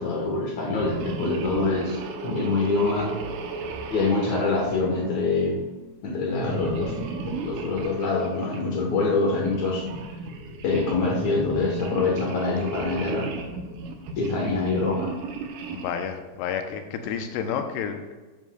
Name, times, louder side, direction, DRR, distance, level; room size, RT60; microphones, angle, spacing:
voice 1, 0.0-3.2 3.9-5.6 6.0-7.0 7.2-9.8 10.6-13.3 14.2-15.1, left 3 dB, 65° left, -1 dB, 1.9 m, -25 dB
sound 1, 0.7-5.5 6.4-8.7 9.3-16.1, right 3 dB, 80° right, 1.9 m, -35 dB
voice 2, 15.7-18.1, left 7 dB, 85° left, 6 dB, 2.9 m, -30 dB
12.0 x 9.4 x 2.3 m, 1.2 s
omnidirectional pair, 4.8 m